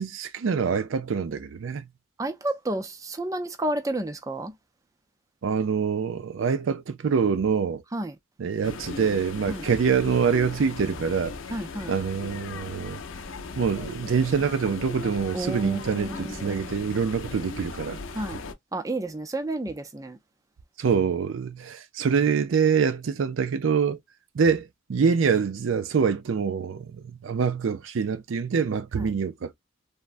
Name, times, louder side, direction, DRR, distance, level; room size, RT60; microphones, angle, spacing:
voice 1, 0.0-1.9 5.4-7.8 8.4-11.3 11.9-13.0 13.6-18.0 20.8-24.0 24.3-29.5, right 6 dB, 80° right, 0.4 m, -25 dB
voice 2, 2.2-4.5 7.9-8.1 9.5-9.6 11.5-12.0 15.3-16.7 18.1-18.4 18.7-20.2 29.0-29.1, right 1 dB, 15° right, 0.4 m, -31 dB
sound 1, 8.6-18.5, left 4 dB, 85° left, 0.6 m, -38 dB
3.4 x 2.1 x 2.5 m
head